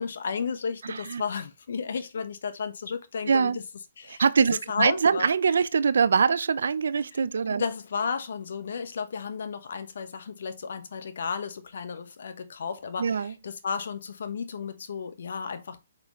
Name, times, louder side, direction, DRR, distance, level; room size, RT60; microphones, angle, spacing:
voice 1, 0.0-3.6 4.0-5.3 7.6-15.8, left 5 dB, 70° left, 1.2 m, -33 dB
voice 2, 0.8-1.2 3.3-3.6 4.1-7.6 13.0-13.3, right 5 dB, 75° right, 0.6 m, -23 dB
6.0 x 5.3 x 3.2 m
hypercardioid pair, 150°, 0 cm